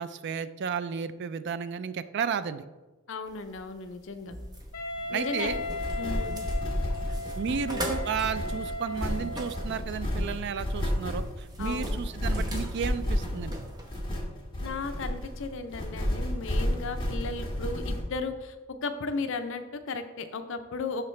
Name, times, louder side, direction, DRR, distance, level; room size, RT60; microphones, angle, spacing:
voice 1, 0.0-2.6 5.1-5.6 7.1-13.6, right 6 dB, 55° right, 13 dB, 0.4 m, -33 dB
voice 2, 3.1-4.4 5.1-5.5 6.0-6.4 11.6-12.0 14.6-18.6 18.8-21.0, left 4 dB, 65° left, 8 dB, 0.6 m, -35 dB
sound 1, 3.3-14.2, equal, 20° right, 0.9 m, -42 dB
Wind instrument woodwind instrument, 4.7-9.7, left 2 dB, 90° left, 0.8 m, -36 dB
sound 2, 5.4-18.0, equal, 25° left, 1.7 m, -32 dB
11.5 x 3.8 x 3.3 m, 1.1 s
head